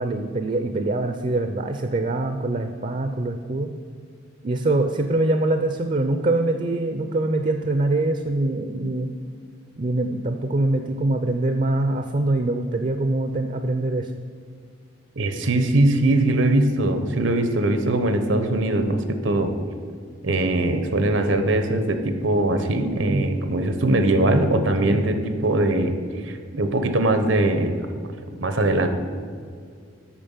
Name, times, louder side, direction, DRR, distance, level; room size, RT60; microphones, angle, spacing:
voice 1, 0.0-3.7 4.4-9.1 9.8-14.1 23.1-23.2 24.8-25.0, right 2 dB, 40° right, 7 dB, 0.5 m, -24 dB
voice 2, 15.2-19.5 20.2-25.9 26.2-27.8 28.4-28.9, right 2 dB, 75° right, 8 dB, 1.0 m, -21 dB
8.8 x 6.1 x 7.2 m, 2.1 s
head